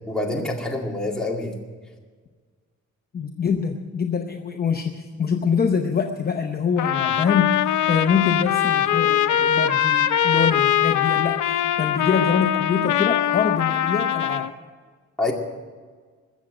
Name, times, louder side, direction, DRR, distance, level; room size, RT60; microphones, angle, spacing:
voice 1, 0.1-1.6 15.2-15.3, left 2 dB, ahead, -2 dB, 2.1 m, -26 dB
voice 2, 3.1-11.4 11.8-14.5, left 6 dB, 30° left, 3 dB, 0.8 m, -24 dB
Trumpet, 6.8-14.5, left 10 dB, 80° left, 0.7 m, -22 dB
21.0 x 7.4 x 7.9 m, 1.5 s
wide cardioid pair, 170°, 30 cm